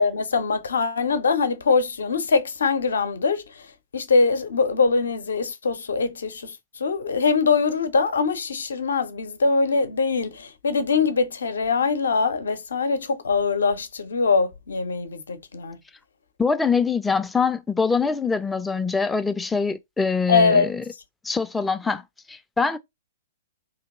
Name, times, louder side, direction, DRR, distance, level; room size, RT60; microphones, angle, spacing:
voice 1, 0.0-3.6 3.9-15.8 20.3-20.7, left 4 dB, 65° left, 0.6 m, -22 dB
voice 2, 16.4-20.8 21.2-22.0 22.3-22.8, left 5 dB, 10° left, 0.4 m, -24 dB
3.2 x 2.8 x 3.9 m
figure-of-eight pair, 110°, 0 cm